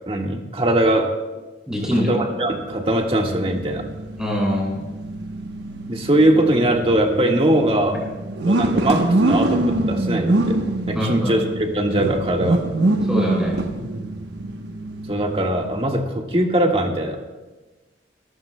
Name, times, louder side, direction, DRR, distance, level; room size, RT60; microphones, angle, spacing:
voice 1, 0.1-1.1 1.9-3.8 5.9-8.0 8.4-10.6 10.9-12.7 15.1-17.2, right 1 dB, 30° right, 1 dB, 1.6 m, -21 dB
voice 2, 1.7-2.1 4.2-4.7 10.9-11.3 13.1-13.5, equal, 5° right, -4 dB, 5.5 m, -22 dB
sound 1, 2.5-15.9, right 2 dB, 80° right, 1.0 m, -25 dB
27.0 x 14.5 x 2.2 m, 1.2 s
head